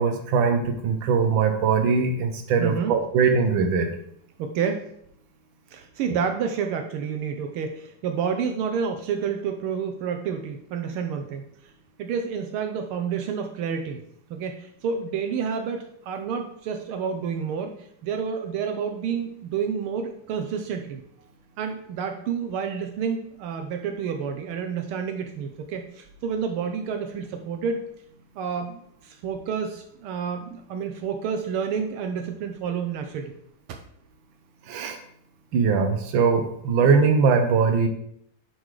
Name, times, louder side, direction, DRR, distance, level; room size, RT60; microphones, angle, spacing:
voice 1, 0.0-3.9 6.1-6.2 34.7-35.0 35.5-37.9, right 5 dB, 65° right, 5 dB, 1.7 m, -21 dB
voice 2, 2.6-2.9 4.4-4.9 5.7-11.4 12.0-14.0 14.3-17.8 18.0-21.0 21.6-27.9 28.4-33.3, right 6 dB, 80° right, 5 dB, 1.6 m, -29 dB
11.0 x 4.0 x 4.8 m, 0.70 s
omnidirectional pair, 2.4 m